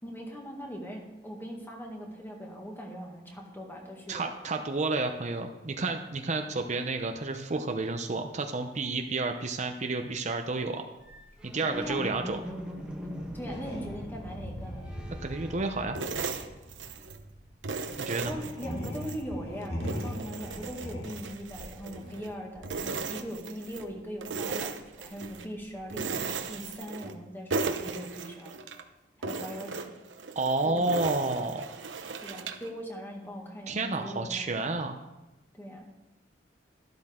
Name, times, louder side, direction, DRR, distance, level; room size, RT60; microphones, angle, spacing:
voice 1, 0.0-4.3 11.7-12.0 13.3-14.8 18.3-28.6 29.2-29.9 30.6-30.8 32.2-34.6 35.5-35.9, equal, 10° left, 0 dB, 1.9 m, -40 dB
voice 2, 4.1-10.9 11.4-12.4 15.2-16.0 18.0-18.3 30.4-31.7 33.7-35.0, right 3 dB, 40° right, 5 dB, 0.7 m, -30 dB
sound 1, 11.0-16.6 16.9-19.2, equal, 5° right, 1.3 m, -43 dB
sound 2, 13.5-24.0 24.3-26.7, equal, 60° left, 2.3 m, -41 dB
sound 3, 15.9-17.2 17.6-19.2 19.6-22.3 22.6-23.9 24.2-25.5 25.9-27.2 27.5-28.8 29.2-32.7, right 4 dB, 90° right, 1.0 m, -36 dB
12.5 x 12.0 x 3.7 m, 1.0 s
head